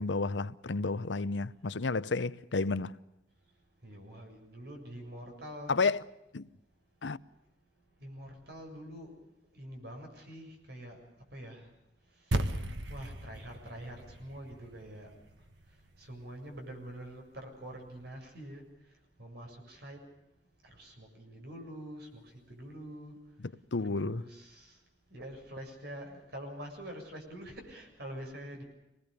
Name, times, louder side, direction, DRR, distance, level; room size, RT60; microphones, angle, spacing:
voice 1, 0.0-2.9 5.7-6.0 6.3-6.5 7.0-7.2 23.7-24.2, left 3 dB, 85° left, 0.8 m, -31 dB
voice 2, 3.8-5.8 8.0-9.1 9.5-11.0 11.3-11.7 12.9-15.1 16.0-18.6 19.2-20.0 20.7-23.1 23.8-24.8 25.1-28.6, right 1 dB, 60° right, 7.2 m, -45 dB
sound 1, 12.3-16.8, right 1 dB, 85° right, 1.7 m, -37 dB
26.0 x 20.5 x 6.9 m
head